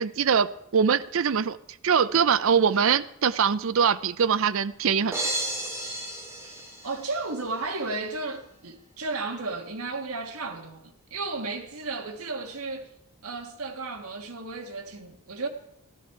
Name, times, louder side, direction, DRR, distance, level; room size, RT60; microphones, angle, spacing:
voice 1, 0.0-1.6 1.8-5.3, right 7 dB, 65° right, 0.5 m, -23 dB
sound 1, 5.1-7.4, right 1 dB, 10° right, 2.4 m, -33 dB
voice 2, 6.8-12.9 13.2-15.5, right 3 dB, 80° right, 1.5 m, -34 dB
13.0 x 13.0 x 4.7 m
head